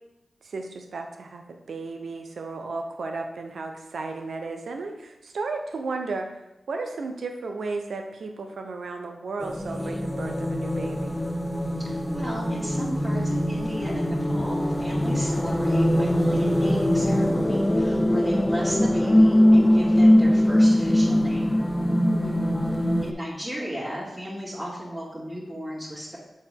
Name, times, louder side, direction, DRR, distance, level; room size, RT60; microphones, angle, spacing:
voice 1, 0.4-6.4 6.7-11.2 22.1-22.6, right 3 dB, 80° right, 4 dB, 0.7 m, -34 dB
sound 1, 9.4-23.1, left 1 dB, 10° left, 0.5 m, -22 dB
voice 2, 11.8-21.7 23.0-26.2, equal, 25° right, -8 dB, 2.3 m, -35 dB
7.2 x 4.3 x 3.5 m, 0.93 s
cardioid pair, 45°, 0 cm